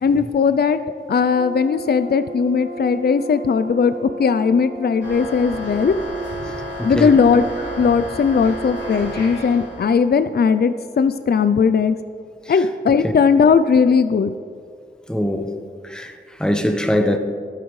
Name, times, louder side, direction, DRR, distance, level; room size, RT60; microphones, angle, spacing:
voice 1, 0.0-0.8 1.1-6.0 6.8-7.5 7.8-12.0 12.5-14.3, left 5 dB, 60° left, 0.4 m, -18 dB
Brass instrument, 1.3-9.7, right 1 dB, 65° right, 1.5 m, -35 dB
sound 1, 5.0-10.0, equal, 90° left, 3.3 m, -32 dB
voice 2, 6.8-7.1 13.0-13.1 15.1-15.5 15.8-17.2, left 1 dB, 5° left, 0.8 m, -22 dB
13.0 x 11.5 x 3.2 m
wide cardioid pair, 45°, 19 cm